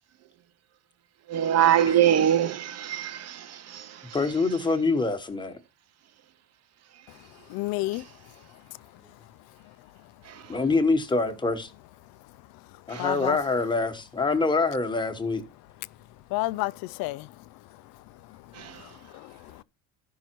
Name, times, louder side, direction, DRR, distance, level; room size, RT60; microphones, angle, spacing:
voice 1, 1.3-3.4 3.7-3.8 12.9-13.0, right 10 dB, 45° right, 0.7 m, -22 dB
voice 2, 4.1-5.5 10.5-11.7 12.9-15.4, left 3 dB, 15° left, 1.2 m, -25 dB
voice 3, 7.5-8.1 13.0-13.4 16.3-17.3 18.3-19.6, left 19 dB, 75° left, 0.6 m, -31 dB
13.0 x 5.6 x 4.5 m
cardioid pair, 135°, 36 cm